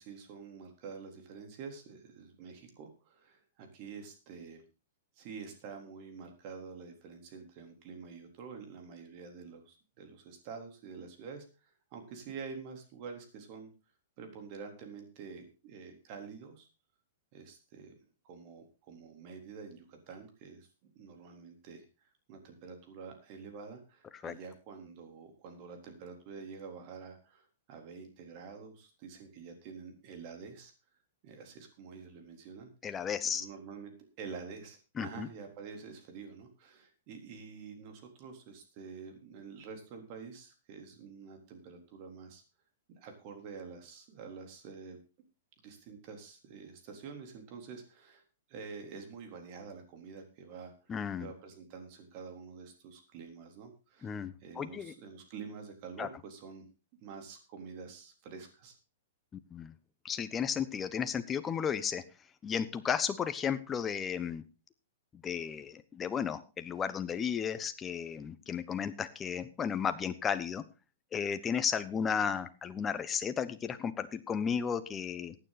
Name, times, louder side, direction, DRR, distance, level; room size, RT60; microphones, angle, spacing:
voice 1, 0.0-4.6 5.2-13.7 14.2-16.7 17.3-20.7 21.0-30.7 31.2-32.7 33.2-42.4 43.0-45.0 45.6-48.2 48.5-50.9 51.2-54.1 54.4-56.7 57.0-58.8, right 5 dB, 45° right, 5 dB, 3.7 m, -48 dB
voice 2, 32.8-33.4 35.0-35.3 50.9-51.3 54.0-54.9 56.0-56.1 59.5-59.7 60.0-62.0 62.4-64.4 65.2-70.6 71.1-75.3, left 7 dB, 15° left, 11 dB, 1.0 m, -34 dB
15.0 x 9.4 x 4.2 m, 0.32 s
hypercardioid pair, 145°, 0 cm